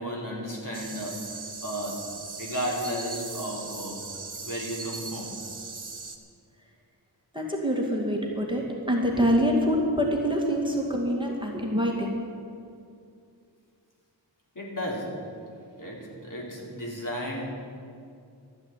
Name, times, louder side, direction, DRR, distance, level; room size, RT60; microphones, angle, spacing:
voice 1, 0.0-2.1 2.4-4.0 4.4-5.4 14.6-15.2 15.8-17.5, equal, 50° left, -3 dB, 3.8 m, -34 dB
sound 1, 0.7-6.2, right 4 dB, 50° right, 1.6 m, -39 dB
voice 2, 7.3-12.2, equal, 10° right, -1 dB, 2.2 m, -25 dB
13.0 x 9.7 x 9.1 m, 2.4 s
wide cardioid pair, 65°, 41 cm